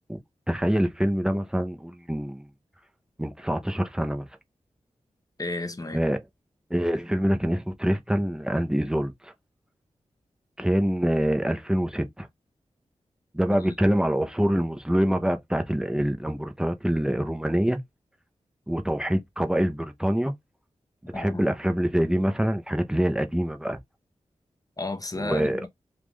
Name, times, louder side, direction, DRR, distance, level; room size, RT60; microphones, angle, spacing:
voice 1, 0.5-2.5 3.2-4.3 5.9-6.2 6.7-9.3 10.6-12.3 13.3-17.8 18.7-20.3 21.0-23.8 25.2-25.6, equal, 5° right, 0.7 m, -25 dB
voice 2, 5.4-6.0 13.4-13.7 21.1-21.5 24.8-25.7, left 2 dB, 30° left, 0.9 m, -33 dB
3.6 x 2.4 x 3.1 m
cardioid pair, 50°, 12 cm